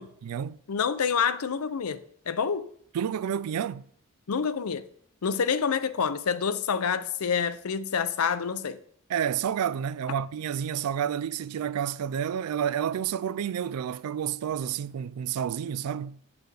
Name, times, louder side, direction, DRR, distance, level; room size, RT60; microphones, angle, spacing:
voice 1, 0.0-0.6 2.9-3.8 9.1-16.2, right 8 dB, 80° right, 0.3 m, -30 dB
voice 2, 0.7-2.7 4.3-4.8 5.2-8.8, left 6 dB, 75° left, 0.5 m, -27 dB
8.5 x 7.8 x 3.3 m
head